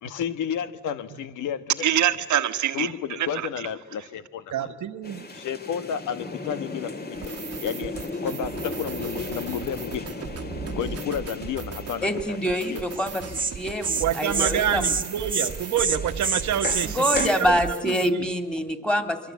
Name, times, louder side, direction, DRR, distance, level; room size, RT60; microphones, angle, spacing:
voice 1, 0.0-1.8 2.7-4.7 5.3-7.3 7.6-7.9 8.2-10.1 10.7-12.4 12.7-12.8, left 8 dB, 85° left, 11 dB, 1.5 m, -31 dB
voice 2, 1.8-3.5 4.5-5.3 14.0-18.2, right 10 dB, 70° right, 9 dB, 1.4 m, -27 dB
sound 1, 5.0-17.4, left 3 dB, 30° left, 2.6 m, -37 dB
sound 2, 7.1-18.1, right 7 dB, 50° right, 1.4 m, -37 dB
voice 3, 12.0-13.2 13.5-14.9 16.8-19.2, equal, 5° left, 7 dB, 3.0 m, -25 dB
Insect, 13.0-13.1 13.3-13.5 13.8-14.0 14.3-14.5 14.8-15.0 15.3-15.5 15.8-17.3, right 5 dB, 30° right, 1.7 m, -26 dB
24.5 x 23.5 x 8.4 m, 1.3 s
cardioid pair, 90°, 30 cm